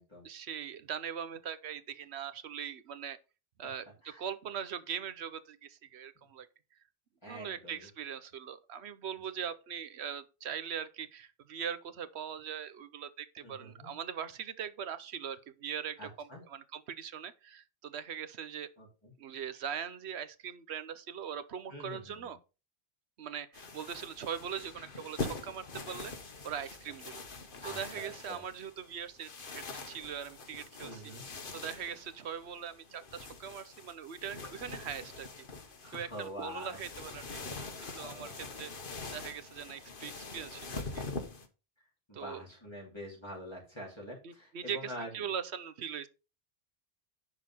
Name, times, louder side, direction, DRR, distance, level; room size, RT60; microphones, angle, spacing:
voice 1, 0.2-3.2 3.6-6.5 7.3-18.7 19.2-22.4 23.2-27.3 27.6-35.5 35.9-38.7 39.1-41.0 42.1-42.4 44.2-46.1, right 8 dB, 80° right, 1.1 m, -41 dB
voice 2, 7.2-7.9 13.4-13.9 16.0-16.4 18.8-19.1 21.7-22.3 27.6-28.4 30.8-31.3 35.8-36.8 37.8-38.4 42.1-45.3, equal, 25° left, 2.9 m, -45 dB
sound 1, 23.5-41.5, left 3 dB, 55° left, 1.4 m, -44 dB
11.0 x 4.0 x 5.5 m
omnidirectional pair, 1.1 m